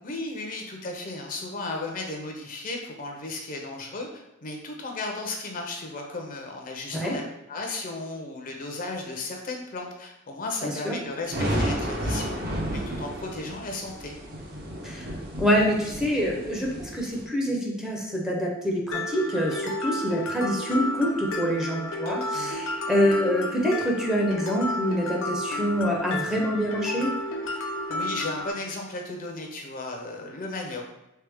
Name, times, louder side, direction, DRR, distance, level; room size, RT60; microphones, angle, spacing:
voice 1, 0.0-7.2 7.5-14.1 22.3-22.6 27.5-27.6 27.9-30.9, left 2 dB, 45° left, 2 dB, 0.6 m, -35 dB
voice 2, 10.6-10.9 14.8-15.1 15.4-27.1, equal, 5° right, -2 dB, 0.6 m, -26 dB
sound 1, 11.3-17.2, equal, 50° right, 0.8 m, -32 dB
Mallet percussion, 18.9-28.5, left 1 dB, 80° left, 0.6 m, -32 dB
3.4 x 3.2 x 3.4 m, 0.93 s
head